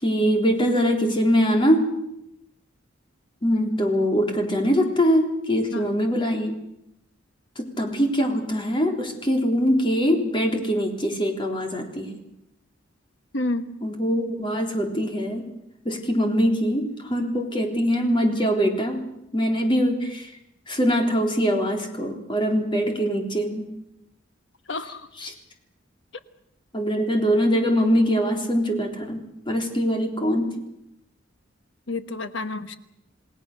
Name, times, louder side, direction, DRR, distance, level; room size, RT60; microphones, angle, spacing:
voice 1, 0.0-1.9 3.4-6.5 7.6-12.2 13.8-15.5 15.8-19.1 19.3-20.3 20.7-23.7 25.2-25.3 26.7-30.5, equal, 25° left, 3 dB, 3.6 m, -23 dB
voice 2, 13.3-13.7 24.7-25.1 31.9-32.7, left 2 dB, 65° left, 10 dB, 1.4 m, -29 dB
28.5 x 18.5 x 6.7 m, 0.82 s
head